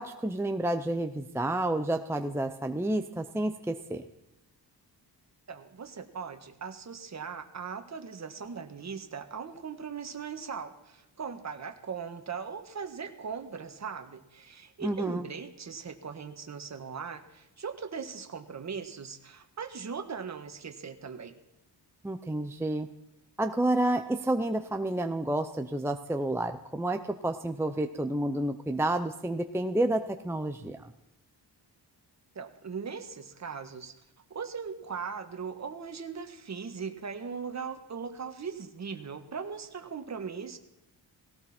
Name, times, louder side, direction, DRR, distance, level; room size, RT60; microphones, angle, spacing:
voice 1, 0.0-4.0 14.8-15.3 22.0-22.9 23.4-30.9, right 1 dB, 5° right, 6 dB, 0.6 m, -30 dB
voice 2, 5.5-21.4 32.3-33.9 34.3-40.6, right 6 dB, 40° right, 7 dB, 1.6 m, -39 dB
18.0 x 17.5 x 4.4 m, 0.91 s
wide cardioid pair, 130°, 42 cm